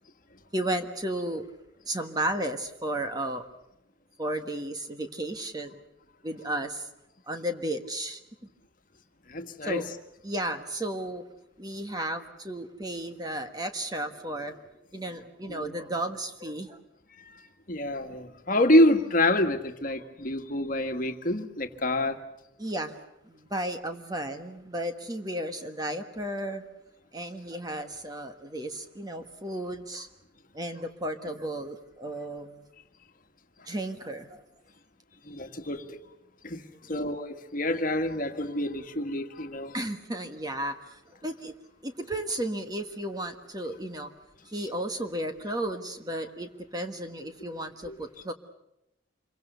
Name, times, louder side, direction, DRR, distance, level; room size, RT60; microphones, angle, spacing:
voice 1, 0.5-1.4 1.9-3.5 4.2-5.8 6.2-6.9 7.3-8.2 9.6-9.9 10.2-11.3 11.6-16.8 22.6-22.9 23.2-26.6 27.1-30.1 30.5-32.7 33.7-34.4 36.7-36.9 39.7-41.5 41.8-44.1 44.4-48.3, right 1 dB, 20° right, 1.4 m, -34 dB
voice 2, 9.3-9.8 15.5-15.6 17.2-17.4 17.7-22.2 35.2-36.0 36.4-36.6 36.9-39.7 47.9-48.0, left 1 dB, 45° left, 1.7 m, -27 dB
27.0 x 23.5 x 6.8 m
head